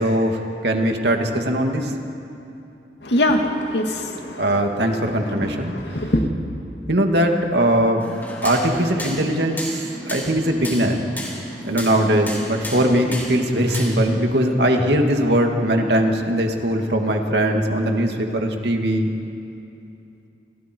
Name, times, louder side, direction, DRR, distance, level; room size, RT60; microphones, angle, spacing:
voice 1, 0.0-1.9 4.4-5.7 6.9-8.0 8.4-9.8 10.1-11.0 11.6-19.1, right 1 dB, 70° right, 3 dB, 2.4 m, -20 dB
voice 2, 3.0-4.4 5.4-6.2, left 1 dB, 75° left, 3 dB, 2.3 m, -23 dB
sound 1, 8.0-14.1, left 1 dB, 10° left, 4.0 m, -33 dB
30.0 x 29.0 x 4.7 m, 2.8 s
head